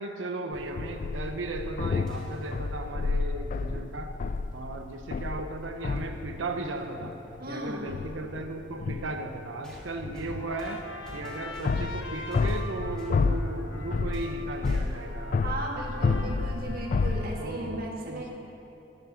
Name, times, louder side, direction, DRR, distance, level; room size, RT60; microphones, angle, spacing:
voice 1, 0.0-4.1 4.5-7.2 7.5-10.9 11.1-16.2 17.4-18.3, right 2 dB, 85° right, 5 dB, 0.8 m, -36 dB
sound 1, 0.5-6.5 6.8-7.5 7.9-9.3 9.7-17.4, left 4 dB, 45° left, 0.4 m, -30 dB
sound 2, 2.1-2.6 4.7-4.8 6.0-6.1 9.6-12.0 12.3-13.2 14.1-14.4 14.6-15.1, equal, 5° left, 1.9 m, -50 dB
voice 2, 7.4-7.9 15.4-18.3, right 1 dB, 55° right, 0 dB, 1.7 m, -36 dB
Trumpet, 10.2-17.6, left 1 dB, 80° left, 1.1 m, -43 dB
12.0 x 8.6 x 6.4 m, 2.9 s
head